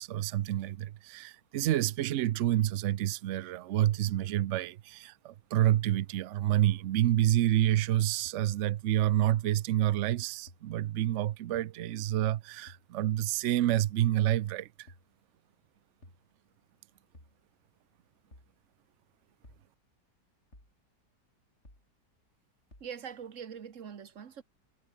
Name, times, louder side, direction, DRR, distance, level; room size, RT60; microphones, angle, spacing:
voice 1, 0.0-14.9, right 13 dB, 80° right, 0.6 m, -28 dB
sound 1, 7.2-7.3 8.3-8.4 9.3-9.4 10.5-10.6 11.5-11.7 12.7-12.9 13.7-13.9 14.9-15.1 16.0-16.2 17.1-17.4 18.3-18.5 19.4-19.7 20.5-20.8 21.7-21.9 22.7-22.9, left 1 dB, 40° left, 8.5 m, -55 dB
voice 2, 22.8-24.4, right 7 dB, 50° right, 1.5 m, -43 dB
omnidirectional pair, 1.9 m